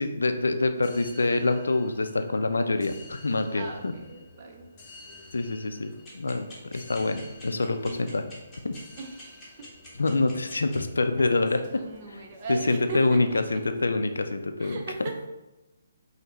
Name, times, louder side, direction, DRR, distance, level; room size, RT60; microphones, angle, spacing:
voice 1, 0.0-3.9 5.3-8.2 8.6-8.7 10.0-11.6 12.1-12.2 12.5-14.8, left 3 dB, 70° left, 7 dB, 0.3 m, -26 dB
sound 1, 0.7-14.2, left 2 dB, 30° left, 0.7 m, -52 dB
voice 2, 3.5-4.7 9.0-9.7 11.6-13.6 14.6-15.2, right 4 dB, 35° right, 2 dB, 0.5 m, -38 dB
sound 2, 6.1-10.8, left 1 dB, 5° left, 1.0 m, -46 dB
5.2 x 2.0 x 3.0 m, 1.0 s
figure-of-eight pair, 135°, 0 cm